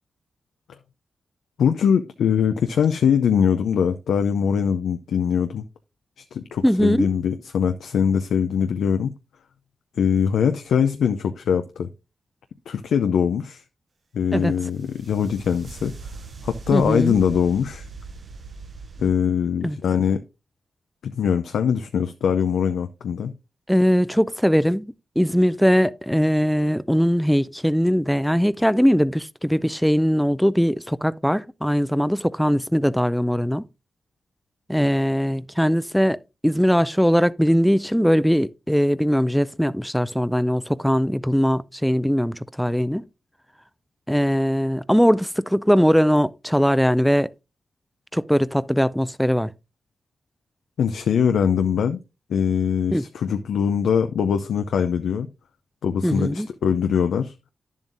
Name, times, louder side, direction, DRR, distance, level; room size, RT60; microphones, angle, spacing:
voice 1, 1.6-5.7 6.2-9.1 10.0-11.9 12.7-13.6 14.1-15.9 16.4-17.9 19.0-20.2 21.0-23.3 50.8-52.0 52.3-55.3 55.8-57.3, left 7 dB, 85° left, 0.4 m, -22 dB
voice 2, 6.6-7.1 14.3-14.5 16.7-17.1 19.6-19.8 23.7-33.6 34.7-36.2 36.4-43.0 44.1-47.3 48.1-49.5 52.9-53.0 56.0-56.5, equal, ahead, 0.4 m, -20 dB
sound 1, 14.5-19.1, right 4 dB, 60° right, 0.7 m, -40 dB
10.0 x 7.3 x 2.5 m
cardioid pair, 50°, 0 cm